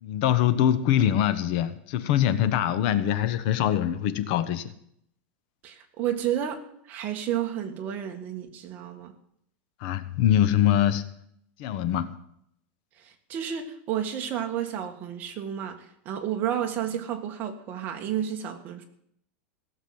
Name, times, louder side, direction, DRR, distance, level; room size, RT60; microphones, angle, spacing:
voice 1, 0.0-4.7 9.8-11.0 11.6-12.1, left 11 dB, 50° left, 12 dB, 1.0 m, -23 dB
voice 2, 5.6-9.1 13.0-18.8, right 10 dB, 30° right, 4 dB, 1.7 m, -31 dB
17.0 x 7.3 x 7.8 m, 0.70 s
supercardioid pair, 170°, 6 cm